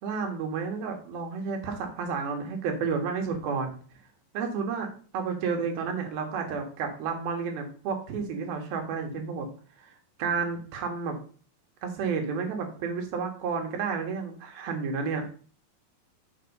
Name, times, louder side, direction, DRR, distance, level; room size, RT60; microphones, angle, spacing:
voice 1, 0.0-3.8 4.3-9.5 9.8-11.2 11.8-15.3, right 5 dB, 85° right, 4 dB, 3.5 m, -31 dB
6.6 x 6.2 x 5.3 m, 0.42 s
omnidirectional pair, 4.2 m